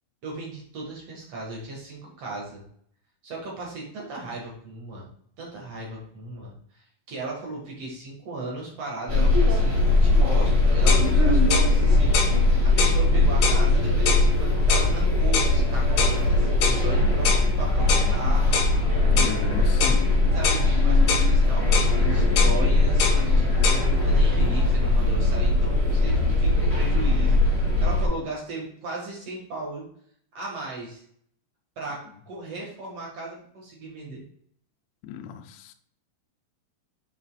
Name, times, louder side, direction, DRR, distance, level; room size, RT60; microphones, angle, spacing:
voice 1, 0.2-2.6 3.2-5.1 5.4-6.5 7.1-12.1 12.6-18.5 20.3-29.9 30.3-31.0 31.7-34.2, right 2 dB, 70° right, 1.4 m, -36 dB
sound 1, 9.1-28.1, left 2 dB, 40° right, 0.8 m, -20 dB
sound 2, 10.4-10.5 10.9-11.1 11.5-11.7 12.1-12.4 12.8-13.0 13.4-13.6 14.1-14.3 14.7-14.9 15.3-15.5 16.0-16.2 16.6-16.8 17.2-17.5 17.9-18.1 18.5-18.7 19.2-19.4 19.8-20.0 20.4-20.7 21.1-21.3 21.7-21.9 22.4-22.6 23.0-23.2 23.6-23.8, left 6 dB, 65° left, 2.9 m, -25 dB
voice 2, 19.1-20.3 35.0-35.7, left 8 dB, 80° left, 3.2 m, -35 dB
9.3 x 5.2 x 2.4 m
omnidirectional pair, 5.8 m